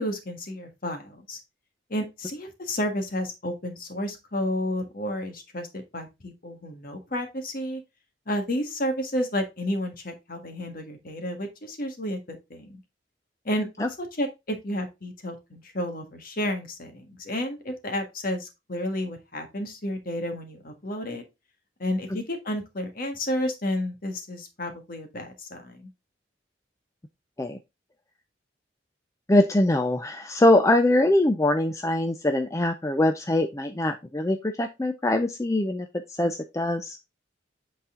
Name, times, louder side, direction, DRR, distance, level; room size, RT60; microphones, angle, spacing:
voice 1, 0.0-1.4 1.9-7.8 8.3-12.8 13.4-21.2 21.8-25.9, left 1 dB, 50° left, 6 dB, 1.5 m, -31 dB
voice 2, 29.3-37.0, left 1 dB, 15° left, 6 dB, 0.5 m, -23 dB
8.3 x 4.1 x 3.7 m, 0.24 s
head